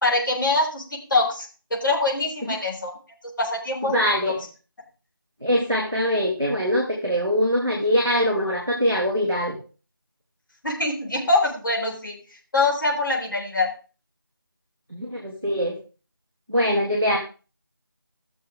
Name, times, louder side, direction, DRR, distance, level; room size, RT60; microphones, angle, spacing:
voice 1, 0.0-3.0 3.4-4.3 10.6-12.2 12.5-13.7, left 2 dB, 60° left, -1 dB, 4.0 m, -24 dB
voice 2, 3.9-4.4 5.4-9.5 14.9-15.7 16.5-17.2, equal, 5° left, -12 dB, 0.6 m, -23 dB
17.0 x 6.8 x 3.6 m, 0.35 s
figure-of-eight pair, 170°, 12 cm